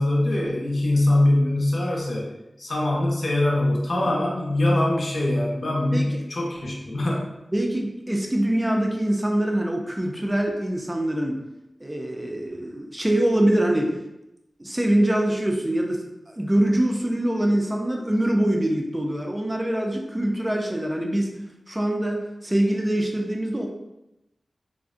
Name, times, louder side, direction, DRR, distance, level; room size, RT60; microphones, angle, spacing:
voice 1, 0.0-2.3 2.6-7.3, left 1 dB, 60° left, -3 dB, 0.6 m, -23 dB
voice 2, 7.5-11.4 11.8-14.0 14.6-21.3 21.7-23.7, right 1 dB, 15° right, 1 dB, 0.4 m, -24 dB
2.5 x 2.0 x 2.4 m, 0.91 s
wide cardioid pair, 80°, 0 cm